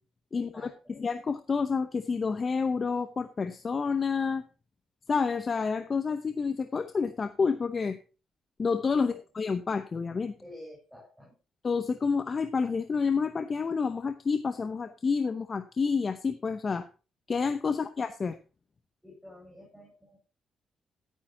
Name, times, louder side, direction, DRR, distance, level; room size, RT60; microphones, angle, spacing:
voice 1, 0.3-0.9 9.0-9.2 10.4-11.4 17.7-17.8 19.0-20.2, left 1 dB, ahead, -5 dB, 6.1 m, -50 dB
voice 2, 0.9-4.4 5.1-8.0 8.6-10.3 11.6-16.9 17.3-18.4, left 5 dB, 35° left, 9 dB, 0.8 m, -29 dB
14.0 x 9.3 x 2.8 m, 0.33 s
cardioid pair, 90°, 0 cm